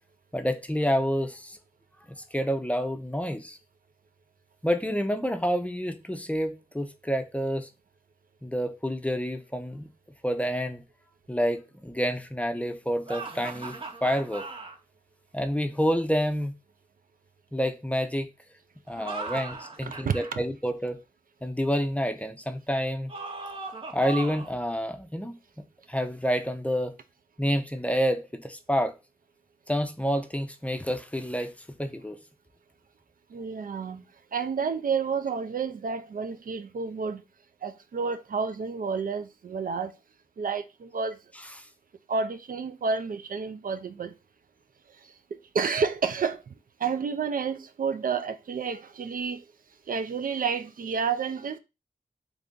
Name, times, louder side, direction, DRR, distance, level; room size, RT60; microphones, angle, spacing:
voice 1, 0.3-1.6 2.3-3.6 4.6-7.7 8.4-9.9 10.2-10.8 11.3-14.5 15.3-16.5 17.5-18.3 18.9-21.0 21.4-23.1 23.9-25.4 25.9-26.9 27.4-28.9 29.7-31.5 31.8-32.2 41.4-41.7, equal, 10° left, 0.6 m, -28 dB
sound 1, 13.1-14.8 18.9-20.3 23.1-24.6, right 3 dB, 35° right, 0.9 m, -38 dB
voice 2, 19.8-20.4 33.3-34.0 34.3-37.2 37.6-39.9 40.4-41.1 42.1-44.1 45.5-46.4 46.8-49.4 49.9-51.6, right 5 dB, 65° right, 0.4 m, -30 dB
3.3 x 2.5 x 3.7 m
cardioid pair, 45°, 15 cm